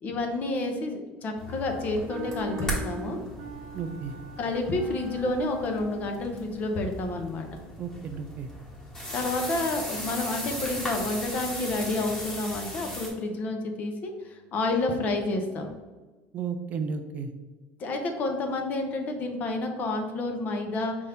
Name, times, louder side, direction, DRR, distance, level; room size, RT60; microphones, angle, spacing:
voice 1, 0.0-3.2 4.4-7.5 9.1-15.8 17.8-21.0, left 2 dB, 35° left, 4 dB, 0.7 m, -29 dB
sound 1, 1.4-13.1, equal, 15° left, 1.3 m, -37 dB
Wind instrument woodwind instrument, 1.5-6.3, right 2 dB, 70° right, 0.7 m, -42 dB
voice 2, 3.7-4.2 7.8-8.5 16.3-17.3, right 5 dB, 35° right, 8 dB, 0.3 m, -33 dB
5.6 x 2.6 x 3.4 m, 1.3 s
cardioid pair, 155°, 5 cm